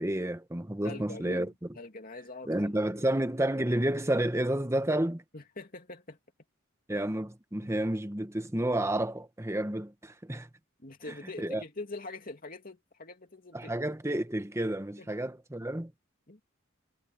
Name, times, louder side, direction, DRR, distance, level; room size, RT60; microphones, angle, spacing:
voice 1, 0.0-1.5 2.5-5.2 6.9-10.5 11.1-11.6 13.5-15.9, right 1 dB, 15° right, 1.1 m, -30 dB
voice 2, 0.8-3.2 5.3-6.2 7.6-7.7 10.8-13.7 15.0-15.1 16.3-16.4, left 2 dB, 45° left, 2.8 m, -44 dB
head